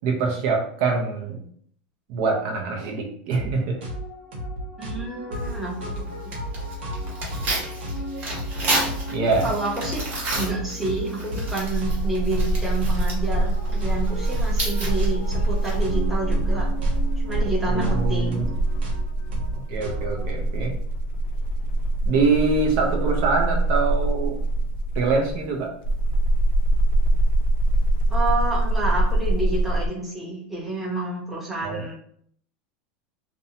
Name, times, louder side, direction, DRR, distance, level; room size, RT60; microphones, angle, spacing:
voice 1, 0.0-1.4 2.1-3.8 9.1-9.5 17.7-18.4 19.5-20.8 22.0-24.4 25.0-25.7 31.6-31.8, right 4 dB, 55° right, 0 dB, 0.6 m, -24 dB
sound 1, 3.3-3.5 3.8-20.3, right 1 dB, 85° right, 1.0 m, -34 dB
voice 2, 4.8-6.0 9.4-10.1 10.3-16.7 17.2-18.4 28.1-31.9, right 2 dB, 5° right, -6 dB, 0.8 m, -29 dB
Tearing, 5.3-16.0, right 1 dB, 35° right, 1.0 m, -32 dB
sound 2, 11.7-29.9, right 1 dB, 75° left, 0.3 m, -24 dB
2.6 x 2.1 x 2.7 m, 0.63 s
supercardioid pair, 155°, 5 cm